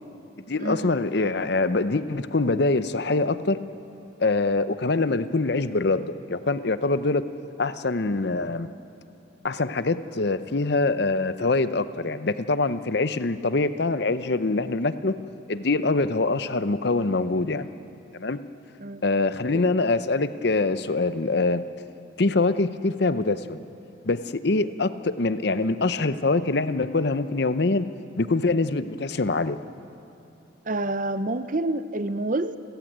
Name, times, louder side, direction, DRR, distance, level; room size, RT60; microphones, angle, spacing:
voice 1, 0.4-3.6 4.2-7.2 7.6-8.7 9.4-15.2 15.5-17.7 18.1-18.4 19.0-21.6 22.2-23.6 24.0-27.9 28.2-29.6, left 3 dB, 55° left, 12 dB, 0.8 m, -24 dB
voice 2, 18.8-19.3 19.5-19.6 30.6-32.6, right 2 dB, 45° right, 12 dB, 0.8 m, -28 dB
28.5 x 15.0 x 9.2 m, 2.8 s
head